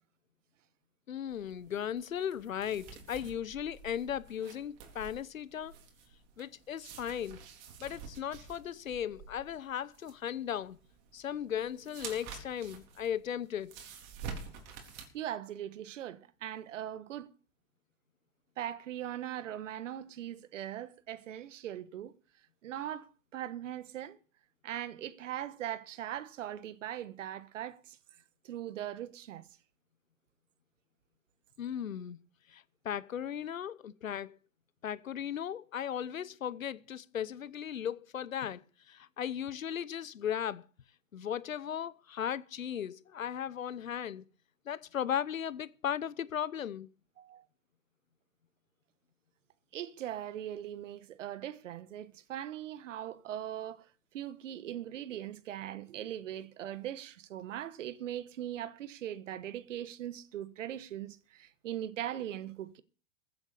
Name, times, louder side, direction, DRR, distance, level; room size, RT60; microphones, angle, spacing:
voice 1, 1.1-5.7 6.4-7.4 7.8-10.8 11.1-13.7 31.6-32.2 32.5-34.4 34.8-38.6 38.9-40.6 41.1-44.2 44.7-46.9, left 9 dB, 90° left, 0.9 m, -37 dB
sound 1, 1.3-15.1, right 6 dB, 40° right, 3.9 m, -49 dB
voice 2, 15.1-17.3 18.6-22.2 22.6-24.2 24.6-28.0 28.4-29.4 47.2-47.4 49.7-53.9 54.1-62.8, right 11 dB, 70° right, 1.4 m, -40 dB
15.0 x 8.1 x 6.8 m
hypercardioid pair, 115°, 39 cm